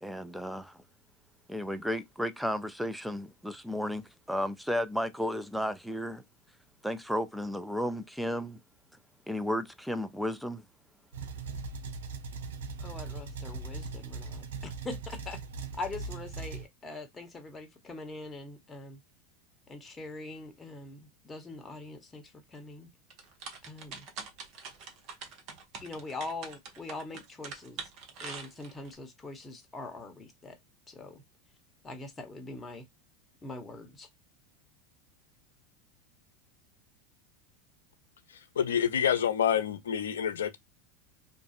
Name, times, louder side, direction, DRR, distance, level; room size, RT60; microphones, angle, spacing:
voice 1, 0.0-0.8 1.5-6.2 6.8-8.6 9.3-10.6, equal, ahead, 0.4 m, -33 dB
sound 1, 11.1-16.7, right 4 dB, 75° right, 0.4 m, -39 dB
voice 2, 12.8-14.5 14.8-15.4 15.8-19.0 19.7-22.9 23.6-24.1 25.8-27.9 28.2-30.6 30.9-31.2 31.8-32.8 33.4-34.1, left 3 dB, 20° left, 0.9 m, -42 dB
sound 2, 23.1-28.9, right 5 dB, 50° right, 0.9 m, -43 dB
voice 3, 38.6-40.6, left 8 dB, 80° left, 0.4 m, -27 dB
2.5 x 2.3 x 2.5 m
hypercardioid pair, 90°, 0 cm